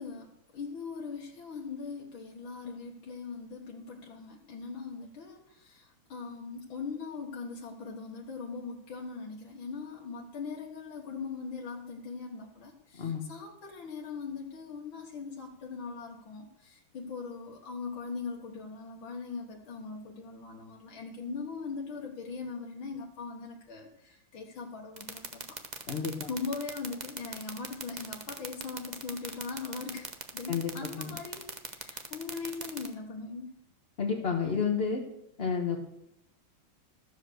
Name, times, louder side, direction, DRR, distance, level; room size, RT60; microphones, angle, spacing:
voice 1, 0.0-25.6 25.9-26.0 26.2-33.6, left 4 dB, 75° left, -1 dB, 2.0 m, -40 dB
sound 1, 25.0-32.9, right 5 dB, 40° right, 0.6 m, -38 dB
voice 2, 25.9-26.3 30.5-30.7 31.0-31.1 34.0-35.0 35.4-35.8, left 6 dB, 35° left, 0 dB, 1.1 m, -30 dB
13.0 x 7.5 x 6.5 m, 0.79 s
omnidirectional pair, 2.3 m